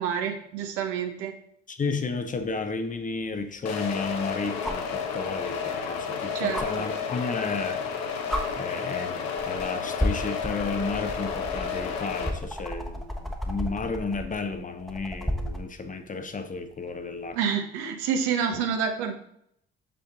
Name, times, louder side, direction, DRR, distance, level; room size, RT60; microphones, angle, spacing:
voice 1, 0.0-1.3 6.3-6.9 17.3-19.1, right 7 dB, 65° right, 1.0 m, -28 dB
voice 2, 1.7-7.8 8.6-17.4 18.5-18.6, left 4 dB, 25° left, 0.8 m, -32 dB
sound 1, 2.4-2.5 4.6-4.9 6.5-6.7 7.8-7.9 8.3-8.4 9.4-9.6 10.0-15.7 17.3-17.4, equal, ahead, 1.1 m, -32 dB
sound 2, 3.6-12.3, left 6 dB, 60° left, 1.1 m, -31 dB
6.7 x 5.5 x 3.9 m
figure-of-eight pair, 50°, 31 cm